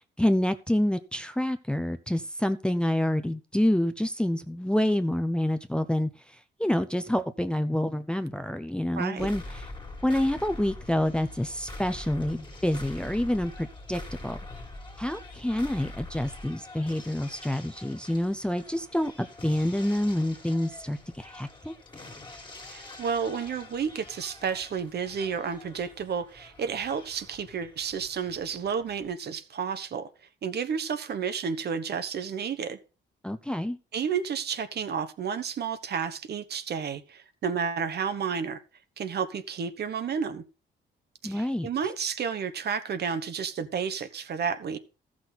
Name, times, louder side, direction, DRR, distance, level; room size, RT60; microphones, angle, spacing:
voice 1, 0.2-6.1 6.6-9.6 10.0-14.4 15.0-21.7 33.2-33.8 41.2-41.7, left 1 dB, 5° left, 0.7 m, -27 dB
voice 2, 9.0-9.3 22.7-30.1 30.4-32.8 33.9-38.6 39.0-40.4 41.2-44.8, right 6 dB, 55° right, 1.1 m, -31 dB
sound 1, 9.2-29.1, left 2 dB, 25° left, 2.2 m, -44 dB
14.0 x 6.2 x 4.1 m
cardioid pair, 90°, 20 cm